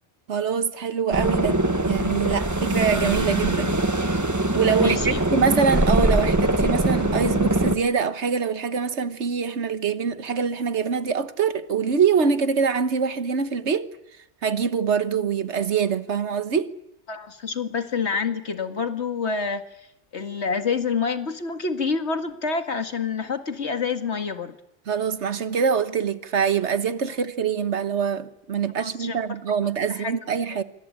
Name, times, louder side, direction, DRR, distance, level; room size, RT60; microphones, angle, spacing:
voice 1, 0.3-3.7 4.5-13.9 14.4-16.7 24.9-30.6, right 6 dB, 85° right, 1.6 m, -24 dB
sound 1, 1.1-7.8, right 1 dB, 15° right, 1.4 m, -22 dB
voice 2, 4.8-5.2 17.1-19.6 20.1-24.6 28.8-29.2 29.9-30.1, left 5 dB, 75° left, 2.2 m, -27 dB
26.5 x 24.0 x 8.6 m
omnidirectional pair, 1.2 m